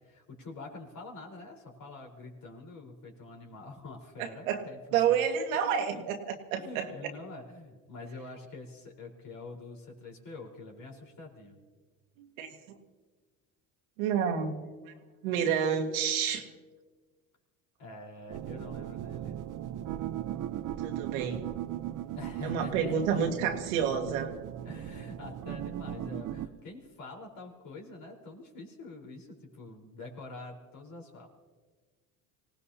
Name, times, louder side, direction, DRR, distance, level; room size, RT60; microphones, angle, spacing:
voice 1, 0.0-4.8 5.6-6.0 6.5-11.6 17.8-19.4 22.2-23.2 24.6-31.3, left 2 dB, 55° left, 0 dB, 4.4 m, -46 dB
voice 2, 4.2-4.6 4.9-6.9 12.2-12.5 14.0-14.9 15.2-16.4 20.8-21.4 22.4-24.3, right 7 dB, 90° right, 3 dB, 1.8 m, -29 dB
sound 1, 18.3-26.5, right 11 dB, 50° right, 0.8 m, -38 dB
25.0 x 18.0 x 2.9 m, 1.4 s
supercardioid pair, 90°, 40 cm